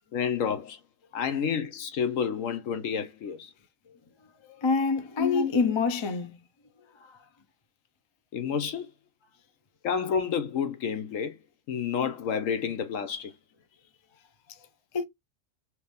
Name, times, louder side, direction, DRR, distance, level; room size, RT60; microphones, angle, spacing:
voice 1, 0.1-0.8 1.1-3.5 5.2-5.5 8.3-8.9 9.8-11.4 11.7-13.3, left 7 dB, 70° left, 1.1 m, -29 dB
voice 2, 4.6-6.4 14.9-15.0, left 4 dB, 35° left, 0.4 m, -26 dB
3.2 x 3.0 x 3.4 m
omnidirectional pair, 1.4 m